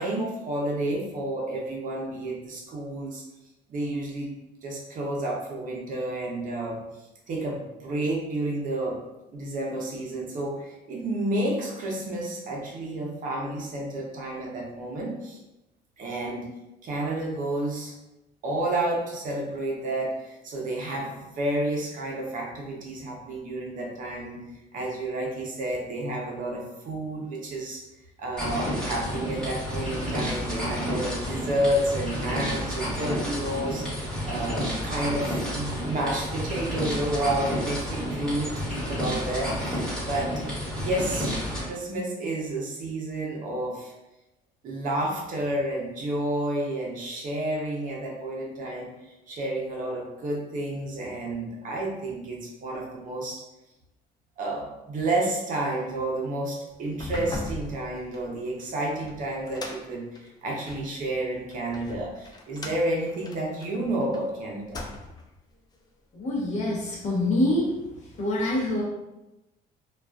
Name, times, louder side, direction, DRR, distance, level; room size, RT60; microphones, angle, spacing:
voice 1, 0.0-3.2 3.7-4.3 4.6-6.8 7.3-9.0 9.3-15.4 16.0-16.5 16.8-17.9 18.4-24.4 24.7-27.8 28.2-33.9 34.2-40.3 40.7-41.3 41.6-43.9 44.6-53.4 54.4-64.9, right 1 dB, 50° right, -2 dB, 0.6 m, -30 dB
sound 1, 28.4-41.6, equal, 5° left, 1.2 m, -30 dB
sound 2, 56.9-60.9 61.5-64.2 64.6-65.3, left 2 dB, 25° left, 0.3 m, -39 dB
voice 2, 66.1-67.7 68.0-68.8, left 1 dB, 45° left, -4 dB, 0.8 m, -25 dB
2.3 x 2.3 x 2.2 m, 0.97 s
cardioid pair, 110°, 17 cm